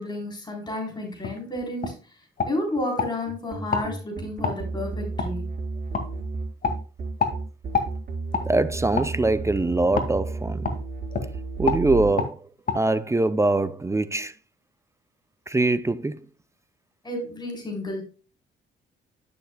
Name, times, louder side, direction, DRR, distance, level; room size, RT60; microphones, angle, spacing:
voice 1, 0.0-2.0 2.4-5.4 17.0-18.0, left 1 dB, 20° left, 3.7 m, -31 dB
sound 1, 1.2-1.4 1.8-2.0 2.4-3.1 3.7-3.9 4.4-4.6 5.2-5.3 5.9-6.1 6.6-6.8 7.2-7.4 7.7-7.9 8.3-8.5 8.9-9.1 10.0-10.1 10.6-10.8 11.1-11.3 11.7-11.8 12.2-12.3 12.7-12.8, left 4 dB, 45° left, 2.1 m, -26 dB
sound 2, 3.2-12.1, right 4 dB, 50° right, 3.8 m, -32 dB
voice 2, 8.5-10.7 11.6-12.5 12.7-14.3 15.5-16.2, right 2 dB, 15° right, 0.5 m, -23 dB
11.5 x 6.7 x 2.2 m
cardioid pair, 90°, 20 cm